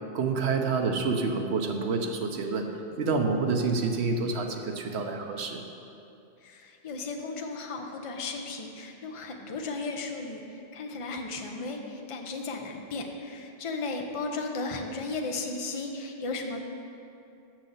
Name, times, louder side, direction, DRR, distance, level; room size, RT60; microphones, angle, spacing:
voice 1, 0.1-2.7 3.0-5.6, right 4 dB, 70° right, 4 dB, 1.0 m, -28 dB
voice 2, 6.4-16.6, left 3 dB, 35° left, 3 dB, 0.7 m, -35 dB
6.6 x 6.2 x 7.1 m, 2.6 s
omnidirectional pair, 1.1 m